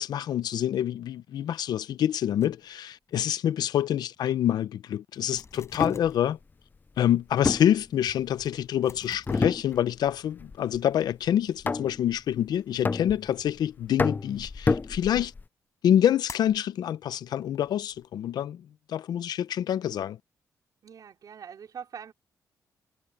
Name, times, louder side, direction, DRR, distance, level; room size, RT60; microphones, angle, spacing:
voice 1, 0.0-6.4 7.0-15.3 15.8-18.6 18.9-20.2, left 10 dB, 80° left, 0.8 m, -26 dB
sound 1, 2.4-3.1 3.4-3.6 4.2-4.3 4.7-4.8 5.1-6.3 6.9-7.0 7.6-7.7 7.9-8.0 8.4-10.3 10.6-14.3 16.3-16.6 17.3-18.1, left 5 dB, 45° left, 6.2 m, -50 dB
sound 2, 5.6-6.1 7.4-8.5 9.3-10.1 10.4-10.8 11.7-12.2 12.8-13.5 14.0-15.4, left 4 dB, 25° left, 0.4 m, -28 dB
voice 2, 20.8-22.1, right 7 dB, 65° right, 4.6 m, -43 dB
cardioid pair, 80°, 7 cm